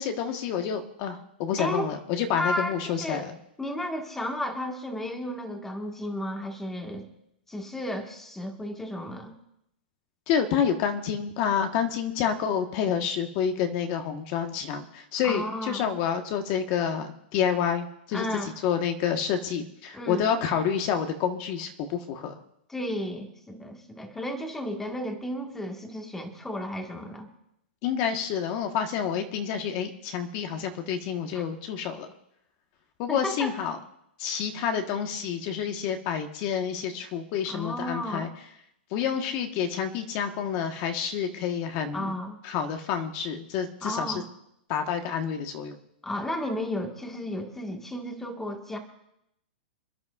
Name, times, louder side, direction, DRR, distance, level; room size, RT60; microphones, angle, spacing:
voice 1, 0.0-3.4 10.3-22.4 27.8-32.1 33.0-33.8 34.2-38.3 38.9-44.2 44.7-45.8, left 8 dB, 40° left, 5 dB, 1.3 m, -28 dB
voice 2, 1.6-1.9 2.3-3.3 3.6-7.1 7.5-9.3 15.2-15.9 18.1-18.5 19.9-20.3 22.7-27.3 31.3-31.4 33.1-33.5 37.5-38.3 41.9-42.4 43.8-44.3 46.0-48.8, left 1 dB, 5° left, 3 dB, 1.5 m, -33 dB
27.5 x 10.5 x 2.4 m, 0.77 s
hypercardioid pair, 145°, 6 cm